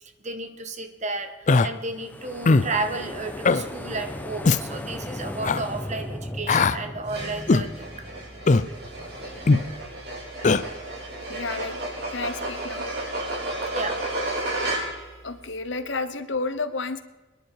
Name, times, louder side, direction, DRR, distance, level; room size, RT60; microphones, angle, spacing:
voice 1, 0.2-7.9 13.7-14.0, right 3 dB, 40° right, 7 dB, 1.4 m, -32 dB
Human voice, 1.5-1.7 2.5-2.7 3.4-3.6 4.4-4.6 5.4-5.6 6.5-6.8 7.5-7.7 8.5-8.7 9.5-9.7 10.4-10.6, left 3 dB, 40° left, 0.5 m, -18 dB
sound 1, 1.9-9.8, left 1 dB, 10° left, 1.1 m, -37 dB
sound 2, 7.1-15.2, right 2 dB, 55° right, 4.6 m, -32 dB
voice 2, 11.3-11.8 12.1-12.8 15.2-17.0, left 3 dB, 70° left, 11 dB, 1.0 m, -31 dB
25.5 x 10.5 x 4.7 m, 1.2 s
head